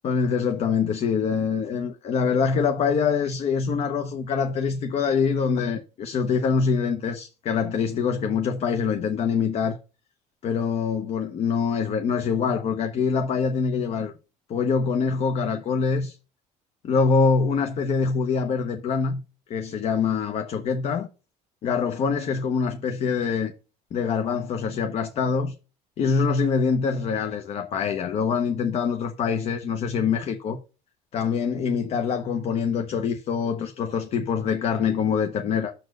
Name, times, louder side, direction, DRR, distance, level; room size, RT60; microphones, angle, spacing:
voice 1, 0.0-9.8 10.4-14.1 14.5-16.2 16.8-19.2 19.5-21.1 21.6-23.5 23.9-25.5 26.0-30.6 31.1-35.7, left 5 dB, 45° left, 0.8 m, -24 dB
6.5 x 4.2 x 6.3 m
cardioid pair, 140°, 15 cm